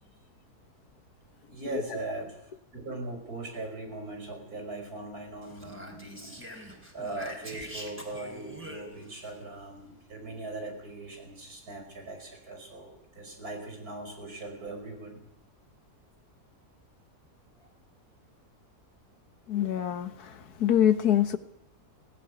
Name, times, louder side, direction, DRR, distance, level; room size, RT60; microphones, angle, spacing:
voice 1, 1.5-15.2 17.6-17.7, right 2 dB, 70° right, 3 dB, 6.0 m, -40 dB
Speech, 5.4-9.3, equal, 5° right, 3.8 m, -44 dB
voice 2, 19.5-21.4, left 10 dB, 80° left, 11 dB, 1.8 m, -25 dB
18.5 x 17.5 x 9.9 m, 0.74 s
omnidirectional pair, 1.6 m